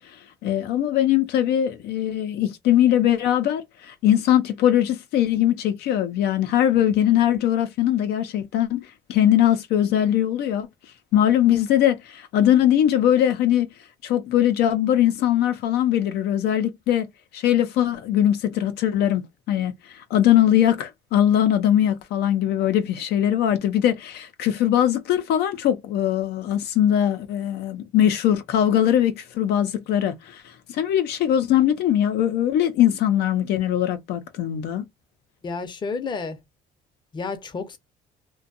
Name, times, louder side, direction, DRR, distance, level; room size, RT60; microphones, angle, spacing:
voice 1, 0.4-10.7 11.1-13.7 14.0-17.1 17.3-34.9, left 11 dB, 75° left, 0.5 m, -21 dB
voice 2, 35.4-36.4 37.1-37.8, left 4 dB, 25° left, 0.6 m, -30 dB
2.6 x 2.2 x 2.5 m
cardioid pair, 110°, 17 cm